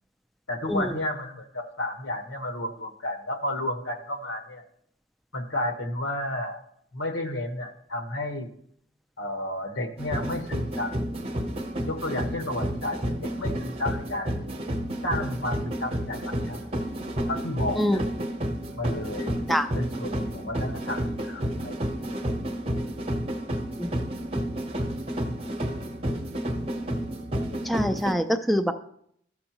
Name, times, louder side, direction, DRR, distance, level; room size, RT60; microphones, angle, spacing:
voice 1, 0.5-4.6 5.3-6.6 6.9-8.5 9.2-10.9 11.9-14.5 15.0-16.7 17.3-18.0 18.8-19.4 19.7-22.3, left 1 dB, 90° left, 5 dB, 1.3 m, -32 dB
sound 1, 10.0-28.1, equal, 30° right, 0.8 m, -31 dB
voice 2, 27.6-28.7, equal, ahead, 7 dB, 0.4 m, -24 dB
13.5 x 6.4 x 2.9 m, 0.69 s
head